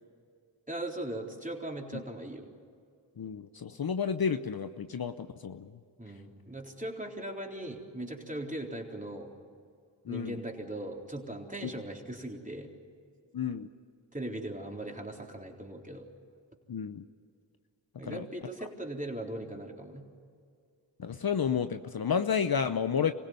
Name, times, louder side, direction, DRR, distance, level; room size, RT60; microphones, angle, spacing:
voice 1, 0.7-2.5 6.0-9.3 10.1-12.7 14.1-16.1 18.0-20.0, right 1 dB, 15° right, 0 dB, 3.9 m, -39 dB
voice 2, 3.2-5.7 10.0-10.4 11.6-11.7 13.3-13.7 16.7-17.0 18.0-18.3 21.0-23.1, left 7 dB, 50° left, 10 dB, 0.9 m, -31 dB
25.0 x 16.5 x 9.5 m, 2.3 s
cardioid pair, 40°, 47 cm